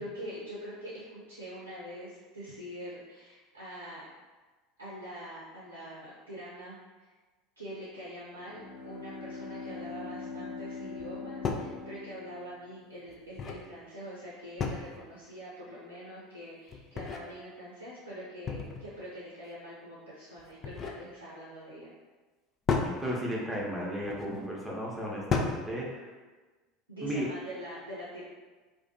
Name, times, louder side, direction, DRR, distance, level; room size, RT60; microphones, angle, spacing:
voice 1, 0.0-4.0 4.8-7.1 7.6-21.9 26.9-28.2, equal, 85° right, -8 dB, 0.5 m, -44 dB
Bowed string instrument, 8.3-13.1, left 4 dB, 85° left, 0.7 m, -42 dB
sound 1, 11.0-11.1 11.4-11.7 13.1-13.7 14.6-15.1 16.7-17.2 18.5-18.9 20.4-21.0 22.7-22.9 24.0-24.3 25.3-25.7, left 5 dB, 35° left, 0.3 m, -32 dB
voice 2, 22.8-26.1 27.0-27.3, equal, 5° right, -4 dB, 0.7 m, -34 dB
2.4 x 2.2 x 2.5 m, 1.3 s
figure-of-eight pair, 70°, 0 cm